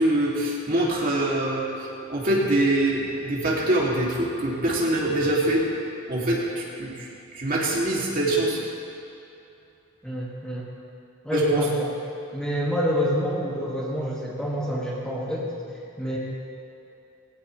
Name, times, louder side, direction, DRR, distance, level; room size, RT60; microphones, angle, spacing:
voice 1, 0.0-1.7 2.1-5.6 6.1-7.0 7.3-8.6 11.3-11.6, right 1 dB, 40° right, -4 dB, 2.9 m, -24 dB
voice 2, 10.0-10.7 11.2-11.9 12.3-16.2, equal, 5° left, -6 dB, 2.2 m, -27 dB
20.0 x 17.5 x 3.4 m, 2.7 s
head